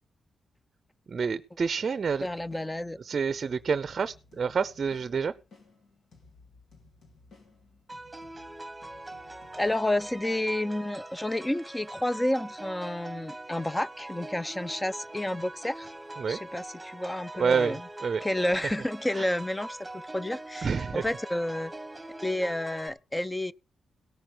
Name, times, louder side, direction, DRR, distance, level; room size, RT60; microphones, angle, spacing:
voice 1, 1.1-2.3 3.0-5.3 16.2-16.4 17.4-18.2 19.2-19.3 20.6-21.0, right 6 dB, 50° right, 0.5 m, -28 dB
sound 1, 1.9-11.1, left 3 dB, 70° left, 2.7 m, -58 dB
voice 2, 2.2-3.0 9.6-15.9 16.3-17.8 18.2-21.7 22.2-23.5, left 1 dB, 10° left, 0.5 m, -30 dB
sound 2, 7.9-22.9, right 2 dB, 10° right, 1.3 m, -43 dB
17.5 x 5.9 x 4.7 m
cardioid pair, 100°, 0 cm